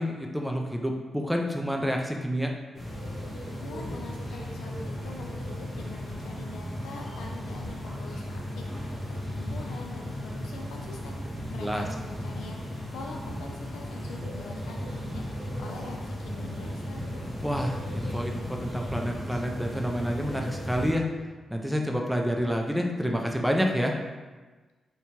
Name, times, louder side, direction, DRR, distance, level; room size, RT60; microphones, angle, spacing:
voice 1, 0.0-2.5 11.6-11.8 17.4-21.1 21.5-23.9, equal, 5° right, 1 dB, 0.3 m, -28 dB
sound 1, 2.7-20.9, equal, 35° left, 1.1 m, -35 dB
voice 2, 3.6-11.2 11.5-17.0, left 3 dB, 90° left, 1 dB, 0.4 m, -44 dB
2.7 x 2.2 x 2.8 m, 1.3 s
cardioid pair, 55°, 0 cm